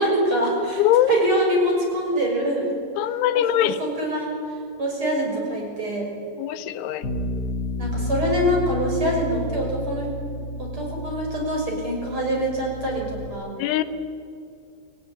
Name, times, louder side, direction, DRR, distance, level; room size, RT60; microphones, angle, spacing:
voice 1, 0.0-0.8 1.1-2.7 3.3-6.1 7.8-10.1 10.6-13.5, equal, 25° right, 0 dB, 6.8 m, -24 dB
voice 2, 0.8-1.1 3.0-3.8 6.4-7.1 13.6-13.8, left 12 dB, 85° left, 10 dB, 3.5 m, -21 dB
Bass guitar, 7.0-13.3, left 1 dB, 30° left, 2.2 m, -30 dB
29.5 x 20.5 x 9.8 m, 2.3 s
omnidirectional pair, 5.3 m